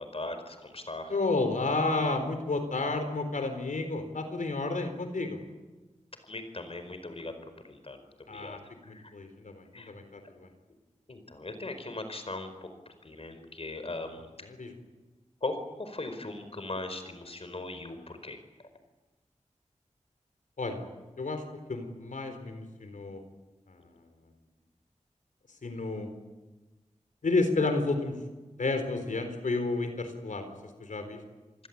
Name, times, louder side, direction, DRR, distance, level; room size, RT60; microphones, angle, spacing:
voice 1, 0.0-1.2 6.2-7.4 7.6-9.1 9.7-9.9 11.1-14.3 15.4-18.4, left 2 dB, 50° left, 8 dB, 4.8 m, -39 dB
voice 2, 1.1-5.4 8.3-8.6 8.9-10.5 14.4-14.7 20.6-20.8 21.2-21.4 21.7-23.2 25.6-26.1 27.2-28.2 28.6-30.5 30.8-31.2, left 3 dB, 85° left, 8 dB, 3.9 m, -31 dB
28.5 x 20.0 x 8.6 m, 1.2 s
wide cardioid pair, 80°, 13 cm